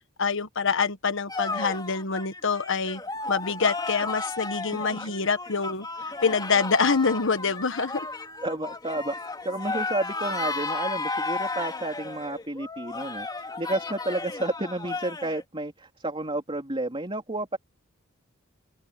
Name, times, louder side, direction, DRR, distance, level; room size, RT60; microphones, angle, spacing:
voice 1, 0.2-3.0 3.3-5.9 6.2-8.1, left 5 dB, 65° left, 1.5 m, -25 dB
sound 1, 1.3-15.4, left 3 dB, 20° left, 2.9 m, -34 dB
voice 2, 8.4-17.6, right 2 dB, 25° right, 3.6 m, -31 dB
head